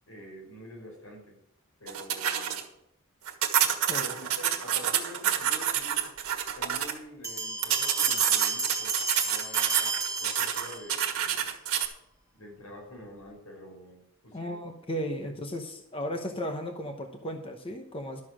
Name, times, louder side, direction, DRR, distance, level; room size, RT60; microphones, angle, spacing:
voice 1, 0.1-1.4 1.8-2.6 3.9-6.1 6.5-11.5 12.4-14.6 15.2-15.4, equal, 85° left, 0 dB, 4.9 m, -47 dB
sound 1, 1.9-2.6 3.3-6.9 7.6-11.9, right 9 dB, 75° right, 1.6 m, -28 dB
sound 2, 7.2-11.0, right 3 dB, 15° right, 1.6 m, -32 dB
voice 2, 14.3-18.2, equal, 25° left, 4 dB, 0.9 m, -35 dB
12.0 x 6.8 x 6.2 m, 0.76 s
head